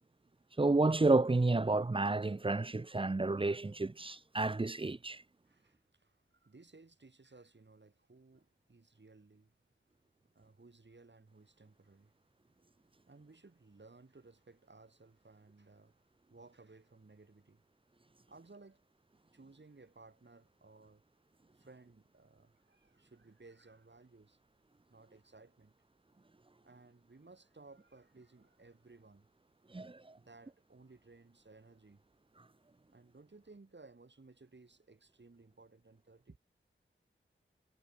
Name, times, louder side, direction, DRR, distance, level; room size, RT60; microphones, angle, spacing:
voice 1, 0.6-5.2 29.7-30.0, right 2 dB, 25° right, 0.7 m, -30 dB
voice 2, 5.4-9.7 10.3-12.1 13.1-16.0 16.3-17.6 18.3-18.8 19.3-21.0 21.5-24.4 24.9-25.7 26.6-29.3 30.1-32.0 32.9-36.4, right 3 dB, 60° right, 6.5 m, -59 dB
wide cardioid pair, 60°, 21 cm